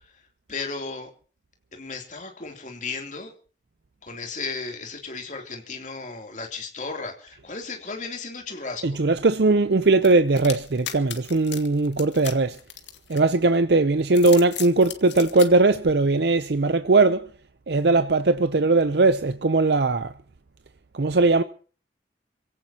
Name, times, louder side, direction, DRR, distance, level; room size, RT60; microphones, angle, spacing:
voice 1, 0.5-1.1 1.7-3.3 4.0-9.0, left 4 dB, 45° left, 3.2 m, -35 dB
voice 2, 8.8-12.6 13.1-17.3 17.7-20.1 20.9-21.4, right 3 dB, 70° right, 0.6 m, -19 dB
sound 1, 10.0-13.5 14.0-15.5, left 10 dB, 85° left, 2.3 m, -36 dB
27.0 x 17.0 x 2.9 m
head